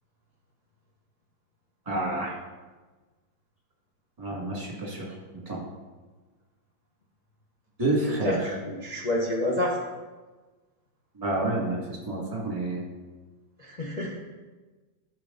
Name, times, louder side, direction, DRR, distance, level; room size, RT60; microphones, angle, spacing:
voice 1, 1.9-2.4 4.2-5.0 5.5-5.6 7.8-8.4 11.2-12.8, right 2 dB, 20° right, -3 dB, 2.2 m, -28 dB
voice 2, 8.2-9.8 13.6-14.2, left 1 dB, 30° left, -3 dB, 0.8 m, -29 dB
12.0 x 5.6 x 4.0 m, 1.3 s
omnidirectional pair, 2.1 m